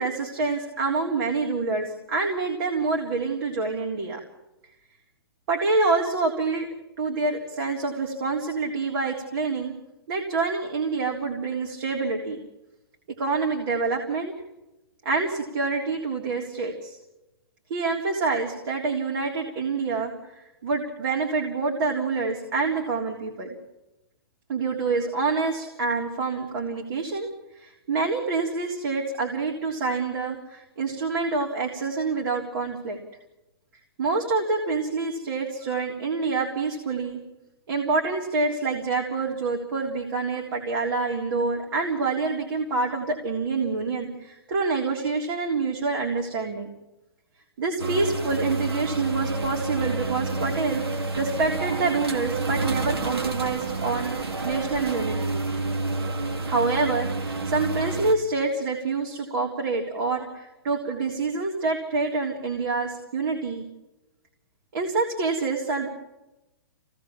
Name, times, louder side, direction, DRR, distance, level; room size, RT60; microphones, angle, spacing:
voice 1, 0.0-4.2 5.5-6.7 7.0-9.7 10.1-12.4 13.2-14.3 15.0-17.0 17.7-20.1 20.6-23.5 24.5-27.3 27.5-33.0 34.0-37.2 37.7-46.7 47.6-54.1 54.4-55.4 56.5-63.6 64.7-65.9, right 4 dB, 60° right, 0 dB, 3.6 m, -27 dB
sound 1, 47.8-58.1, right 3 dB, 90° right, 2.5 m, -29 dB
25.5 x 18.0 x 7.3 m, 0.98 s
hypercardioid pair, 130°, 13 cm